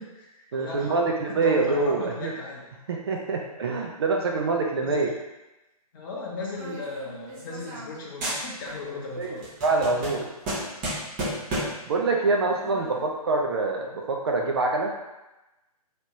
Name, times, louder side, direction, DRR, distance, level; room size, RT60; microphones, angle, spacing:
voice 1, 0.0-2.6 4.8-5.1 5.9-9.5 11.2-11.3 12.4-13.0, left 3 dB, 35° left, -3 dB, 0.7 m, -37 dB
voice 2, 0.5-2.3 2.9-5.1 9.2-9.3 9.6-10.3 11.8-14.9, right 3 dB, 40° right, 1 dB, 0.4 m, -25 dB
sound 1, 6.6-7.9 8.2-8.9 9.2-11.9, right 1 dB, 20° right, 0.9 m, -33 dB
3.3 x 2.8 x 2.6 m, 1.0 s
figure-of-eight pair, 140°, 20 cm